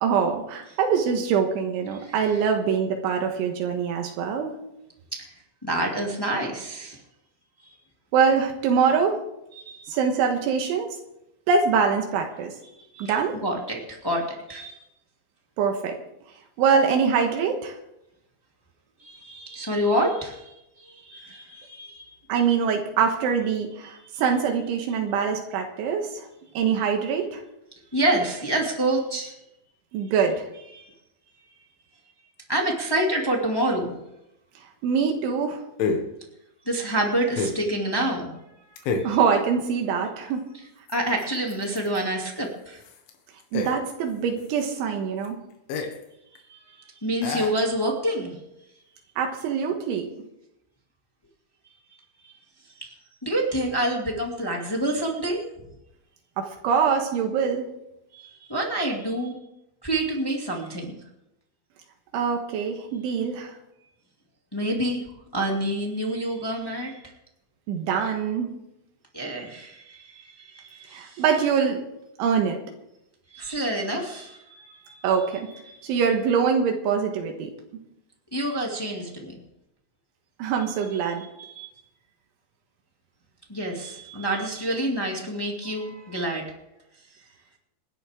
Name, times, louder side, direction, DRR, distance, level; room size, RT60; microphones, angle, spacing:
voice 1, 0.0-4.5 8.1-9.2 9.9-11.0 11.5-12.5 13.0-13.4 15.6-16.0 16.6-17.8 22.3-26.3 26.6-27.4 29.9-30.5 34.8-35.6 39.0-40.5 43.5-45.4 49.2-50.1 56.4-57.7 62.1-63.6 67.7-68.5 70.9-71.8 72.2-72.6 75.0-75.5 75.8-77.5 80.4-81.2, right 6 dB, 85° right, 3 dB, 3.8 m, -24 dB
voice 2, 5.6-7.0 9.5-9.9 12.9-13.1 13.4-14.8 19.0-22.2 27.9-29.3 30.7-30.9 32.5-33.9 36.6-38.3 40.9-42.8 46.5-46.6 47.0-48.3 52.8-52.9 53.2-55.5 58.1-59.4 59.8-60.9 64.5-65.0 65.3-67.0 69.1-71.2 73.3-75.0 75.7-75.8 78.3-79.3 81.4-81.7 83.5-86.4, right 1 dB, 15° left, -1 dB, 0.7 m, -27 dB
sound 1, 33.0-33.1 35.8-36.2 37.3-37.7 38.8-39.2 40.9-42.1 42.4-42.5 42.8-44.1 44.4-44.7 45.2-45.3 45.7-46.0 46.4-46.5 47.2-47.7, left 4 dB, 85° left, 4.1 m, -29 dB
27.0 x 11.0 x 3.7 m, 0.86 s
omnidirectional pair, 5.4 m